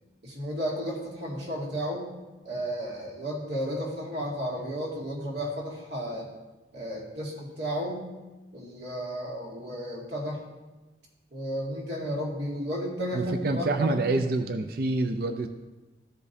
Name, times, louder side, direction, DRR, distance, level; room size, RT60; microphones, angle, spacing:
voice 1, 0.2-2.1 2.4-6.3 6.7-8.1 8.5-10.4 11.3-14.1, equal, 70° right, -3 dB, 2.2 m, -33 dB
voice 2, 13.1-15.5, right 2 dB, 55° right, 7 dB, 0.4 m, -27 dB
14.0 x 5.2 x 2.7 m, 1.1 s
head